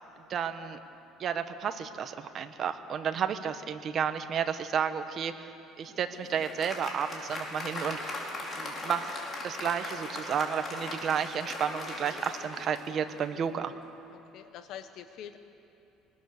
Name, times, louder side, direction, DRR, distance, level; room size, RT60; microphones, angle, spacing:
voice 1, 0.3-0.8 1.2-5.5 5.8-8.2 8.5-9.1 9.4-13.7, right 7 dB, 45° right, 8 dB, 1.3 m, -32 dB
Applause, 5.8-13.3, left 2 dB, 35° left, 4.5 m, -39 dB
voice 2, 14.1-15.4, left 9 dB, 65° left, 8 dB, 1.1 m, -45 dB
26.0 x 20.0 x 6.8 m, 2.9 s
cardioid pair, 120°, 0 cm